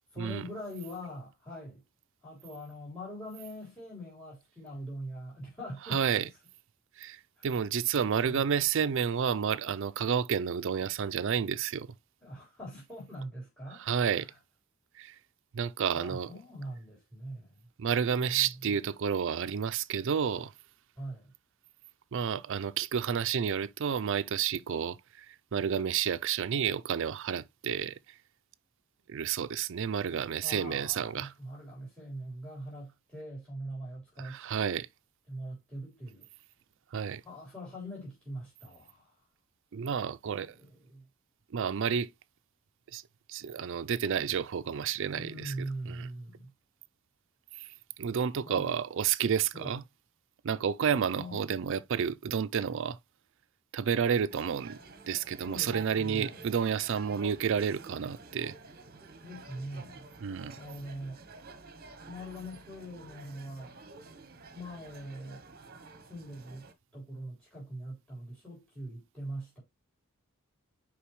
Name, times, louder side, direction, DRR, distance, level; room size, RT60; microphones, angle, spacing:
voice 1, 0.1-1.8 2.2-6.0 7.4-7.6 8.2-8.4 12.2-14.4 15.9-17.7 18.1-18.8 21.0-21.3 30.4-34.5 35.3-36.3 37.2-39.2 40.4-41.0 45.1-46.5 48.4-48.7 49.5-49.8 51.1-51.4 55.4-56.4 59.2-60.1 60.5-61.2 62.0-63.8 64.5-65.5 66.1-69.6, equal, 5° left, 3.9 m, -42 dB
voice 2, 5.9-6.2 7.0-11.9 13.7-14.3 15.0-15.2 15.5-16.3 17.8-20.5 22.1-28.0 29.1-31.3 34.2-34.9 36.9-37.2 39.7-40.6 41.5-42.1 42.9-43.0 43.3-45.5 45.9-46.1 47.6-47.7 48.0-49.8 50.4-53.0 53.7-54.8 55.1-58.6 60.2-60.6, right 7 dB, 60° right, 0.4 m, -30 dB
sound 1, 54.3-66.7, right 3 dB, 45° right, 1.0 m, -50 dB
7.0 x 5.0 x 3.0 m
head